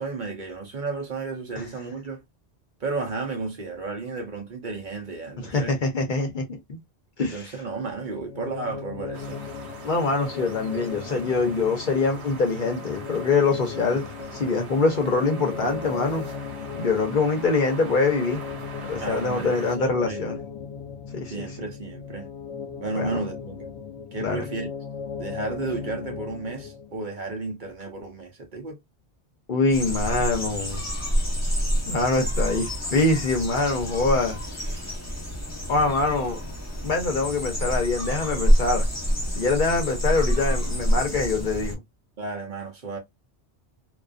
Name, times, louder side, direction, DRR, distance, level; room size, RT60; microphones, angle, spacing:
voice 1, 0.0-2.2 2.8-5.8 7.3-9.4 19.0-19.7 20.1-20.2 21.3-22.3 22.8-23.7 24.1-24.7 25.2-28.8 42.2-43.0, right 3 dB, 55° right, 0.7 m, -33 dB
voice 2, 5.5-6.6 7.2-7.5 9.8-14.0 14.3-16.2 16.7-18.4 18.8-20.4 21.1-21.3 22.9-23.2 24.2-24.4 29.5-30.8 31.9-34.4 35.7-36.4 36.8-38.9 39.3-41.8, left 3 dB, 55° left, 0.7 m, -24 dB
sound 1, 8.2-27.1, left 6 dB, 85° left, 0.9 m, -37 dB
sound 2, 9.1-19.8, right 4 dB, 80° right, 1.1 m, -42 dB
sound 3, 29.7-41.7, equal, 15° left, 1.0 m, -27 dB
2.3 x 2.3 x 2.3 m
omnidirectional pair, 1.1 m